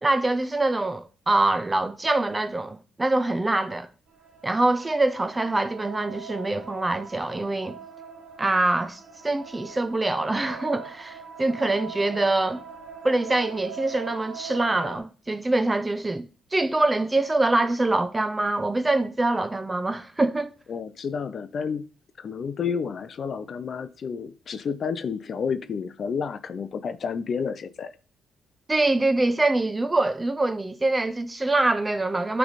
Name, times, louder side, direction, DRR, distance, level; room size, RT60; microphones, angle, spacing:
voice 1, 0.0-3.9 4.4-7.8 8.4-12.6 13.0-16.2 16.5-20.5 28.7-32.4, right 2 dB, 20° right, 0.7 m, -24 dB
sound 1, 4.1-15.0, right 6 dB, 65° right, 2.0 m, -42 dB
voice 2, 20.7-21.9 22.2-27.9, left 6 dB, 50° left, 0.6 m, -30 dB
9.2 x 3.5 x 4.1 m
cardioid pair, 90°, 0 cm